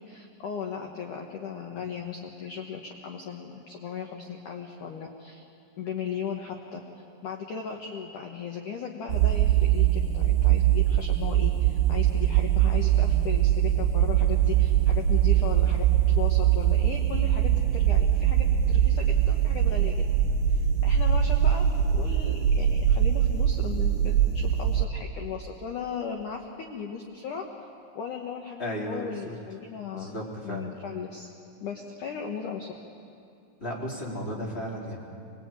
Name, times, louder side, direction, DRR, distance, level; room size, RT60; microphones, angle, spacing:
voice 1, 0.1-5.4 5.8-6.8 7.2-20.1 20.5-27.4 28.0-31.3 31.6-32.7, left 6 dB, 70° left, 2 dB, 2.0 m, -37 dB
sound 1, 9.1-24.9, right 10 dB, 65° right, 2.2 m, -22 dB
voice 2, 28.6-29.4 29.9-30.7 33.6-35.0, equal, 15° left, -3 dB, 3.6 m, -34 dB
25.0 x 21.0 x 9.0 m, 2.5 s
omnidirectional pair, 5.6 m